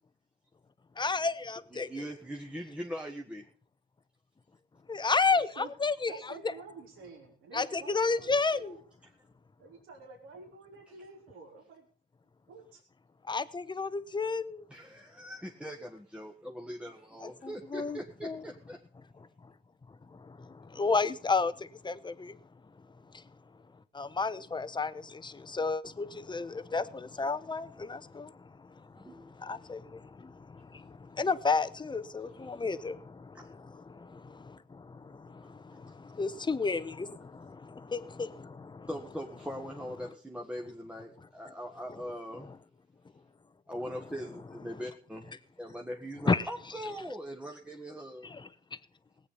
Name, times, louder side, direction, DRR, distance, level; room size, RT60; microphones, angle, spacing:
voice 1, 1.0-2.0 4.9-6.1 7.5-8.7 13.3-14.7 17.2-18.4 20.1-22.4 23.9-28.3 28.9-38.9 46.3-46.4 48.2-48.5, left 4 dB, 20° left, 0.9 m, -32 dB
voice 2, 1.7-3.5 14.7-18.8 29.0-29.5 32.2-32.6 35.7-35.9 38.9-42.5 43.7-48.3, equal, 5° right, 1.5 m, -41 dB
voice 3, 5.3-5.7 6.1-8.8 9.6-11.9 12.5-12.8, right 4 dB, 90° right, 3.6 m, -49 dB
18.5 x 8.7 x 5.6 m
cardioid pair, 90°, 20 cm